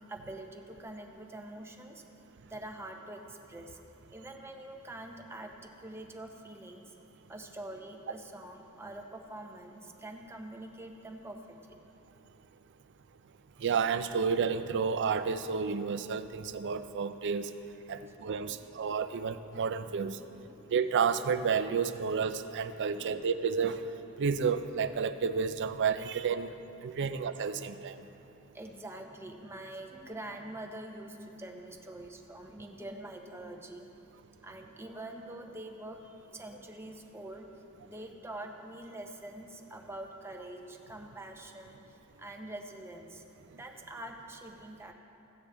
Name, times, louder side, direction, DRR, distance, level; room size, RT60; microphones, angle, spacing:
voice 1, 0.1-2.1 2.5-3.8 4.1-6.9 7.3-11.8 13.5-13.7 17.9-18.0 18.4-18.6 20.3-20.6 23.0-23.2 26.8-27.1 28.5-33.9 34.4-44.9, right 1 dB, 10° right, 2 dB, 0.6 m, -45 dB
voice 2, 13.6-17.5 17.9-20.2 20.7-23.8 24.2-26.5 26.8-28.0, right 6 dB, 55° right, 11 dB, 0.4 m, -31 dB
15.0 x 8.6 x 3.4 m, 2.9 s
head